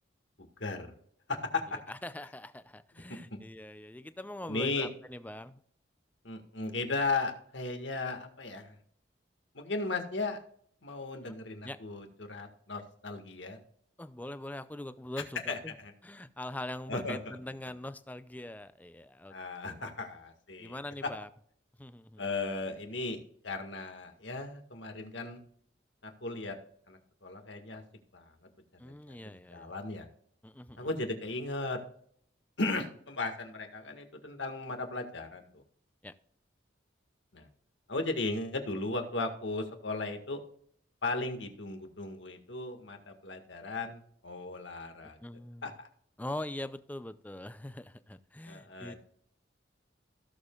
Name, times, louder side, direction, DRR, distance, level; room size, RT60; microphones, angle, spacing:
voice 1, 0.6-0.9 1.3-1.8 3.3-3.4 4.5-4.9 6.2-8.8 9.5-10.4 10.8-13.6 15.5-15.9 16.9-17.3 19.3-21.1 22.2-23.2 23.4-25.4 26.0-26.6 26.9-27.8 28.1-28.3 29.1-30.1 30.8-31.8 32.6-35.6 37.3-37.5 37.9-40.4 41.0-45.2 45.6-45.9 48.5-49.0, left 3 dB, 80° left, 5 dB, 1.8 m, -36 dB
voice 2, 1.9-5.6 11.3-11.4 11.6-11.8 14.0-15.8 16.0-19.3 19.7-19.8 20.6-21.3 21.8-22.2 28.8-29.7 30.4-30.9 36.0-36.1 45.0-45.7 46.2-48.9, left 1 dB, 10° left, 12 dB, 0.5 m, -42 dB
16.5 x 7.0 x 2.4 m, 0.63 s
head